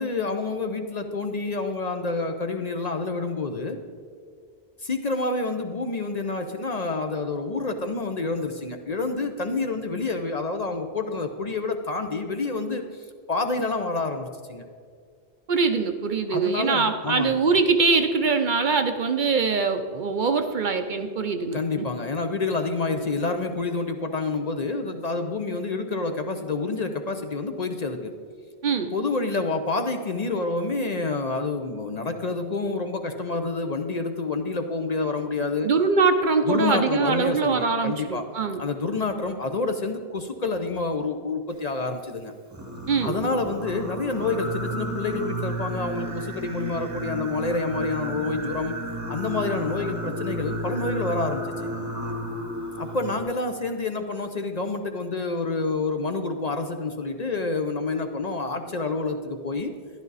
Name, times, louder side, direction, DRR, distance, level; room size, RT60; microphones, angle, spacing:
voice 1, 0.0-3.8 4.8-14.6 16.3-17.4 21.5-28.2 28.9-35.8 36.5-42.3 43.0-48.8 49.1-51.5 52.8-59.7, left 3 dB, 45° left, 6 dB, 0.7 m, -28 dB
voice 2, 15.5-21.9 28.6-28.9 35.6-38.6 42.9-43.2, right 4 dB, 55° right, 7 dB, 0.7 m, -23 dB
Singing, 42.5-53.2, equal, 20° right, 0.9 m, -32 dB
13.0 x 11.0 x 4.0 m, 2.1 s
omnidirectional pair, 1.1 m